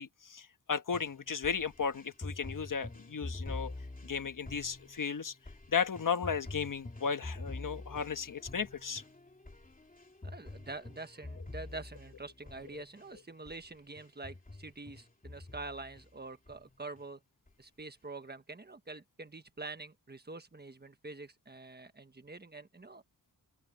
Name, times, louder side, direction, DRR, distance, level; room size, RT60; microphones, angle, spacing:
voice 1, 0.0-3.7 4.0-5.3 5.7-9.0, left 6 dB, 50° left, 1.4 m, -35 dB
sound 1, 0.9-13.1 13.5-13.6 14.0-16.1 16.5-17.0 17.5-17.6, left 2 dB, 20° left, 3.0 m, -46 dB
voice 2, 10.2-17.2 17.6-23.0, right 3 dB, 25° right, 1.3 m, -46 dB
open air
wide cardioid pair, 135°, 40 cm